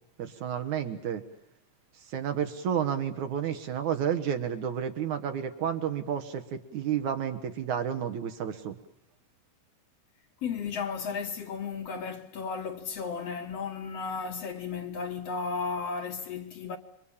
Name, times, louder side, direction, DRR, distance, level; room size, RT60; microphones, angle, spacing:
voice 1, 0.2-1.2 2.1-8.8, right 8 dB, 65° right, 2.7 m, -31 dB
voice 2, 10.4-16.8, left 5 dB, 55° left, 2.1 m, -34 dB
28.0 x 24.0 x 7.3 m
omnidirectional pair, 3.8 m